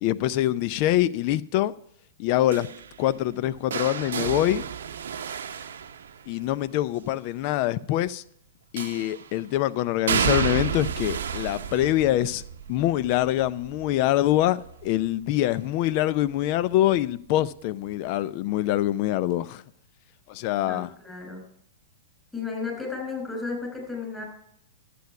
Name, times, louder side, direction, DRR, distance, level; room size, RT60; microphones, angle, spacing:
voice 1, 0.0-1.7 2.2-2.7 3.0-4.6 6.3-8.2 8.7-12.4 12.7-19.6 20.3-20.9, left 14 dB, 45° left, 0.5 m, -24 dB
sound 1, 2.5-6.6 8.8-9.4 10.1-15.9 16.2-16.6 17.9-18.0, right 8 dB, 70° right, 0.7 m, -32 dB
voice 2, 20.7-21.4 22.3-24.2, left 4 dB, 10° left, 5.3 m, -33 dB
11.5 x 8.5 x 5.8 m
figure-of-eight pair, 105°, 0 cm